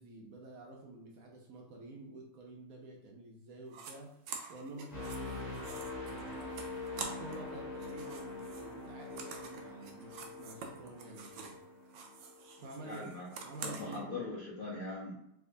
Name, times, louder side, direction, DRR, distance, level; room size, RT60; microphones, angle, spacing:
voice 1, 0.0-4.1 4.5-6.4 7.0-11.6 12.6-13.0 13.4-14.3, right 2 dB, 70° right, 0 dB, 0.9 m, -49 dB
sound 1, 3.7-3.9 4.3-7.5 7.8-11.6 11.9-14.0, right 5 dB, 90° right, 1.3 m, -47 dB
sound 2, 4.9-12.7 13.2-13.4, left 2 dB, 30° left, 1.6 m, -44 dB
voice 2, 12.8-13.3 13.6-15.2, left 3 dB, 70° left, -7 dB, 0.5 m, -41 dB
3.5 x 2.8 x 2.5 m, 0.78 s
omnidirectional pair, 1.9 m